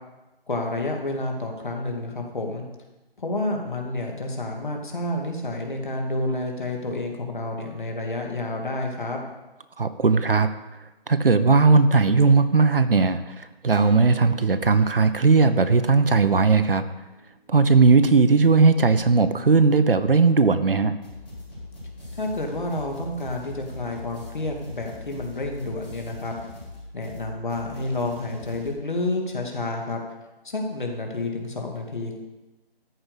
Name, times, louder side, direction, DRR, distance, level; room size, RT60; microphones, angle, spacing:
voice 1, 0.5-2.6 3.2-9.2 22.1-26.3 26.9-30.0 30.4-32.1, left 2 dB, 50° left, 2 dB, 2.5 m, -29 dB
voice 2, 9.8-10.5 11.1-16.8 17.5-20.9, right 4 dB, 65° right, 10 dB, 1.0 m, -18 dB
sound 1, 13.7-18.0, left 1 dB, 80° left, 2.5 m, -42 dB
sound 2, 21.0-28.7, left 1 dB, 10° left, 2.0 m, -41 dB
14.0 x 5.4 x 8.3 m, 1.1 s
figure-of-eight pair, 175°, 30 cm